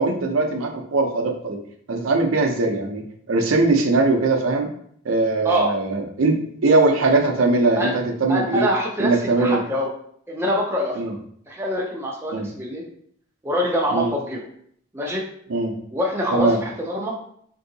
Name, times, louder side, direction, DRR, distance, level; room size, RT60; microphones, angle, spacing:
voice 1, 0.0-1.6 1.9-3.0 3.3-4.7 5.0-8.6 9.0-9.6 11.0-11.1 12.3-12.5 13.9-14.1 15.5-15.7 16.3-16.6, right 3 dB, 75° right, 3 dB, 0.5 m, -20 dB
voice 2, 8.3-9.9 10.3-11.0 11.5-12.8 13.4-14.5 14.9-15.2 15.9-16.5 16.8-17.2, equal, 10° right, -2 dB, 0.4 m, -24 dB
3.6 x 2.7 x 2.7 m, 0.65 s
head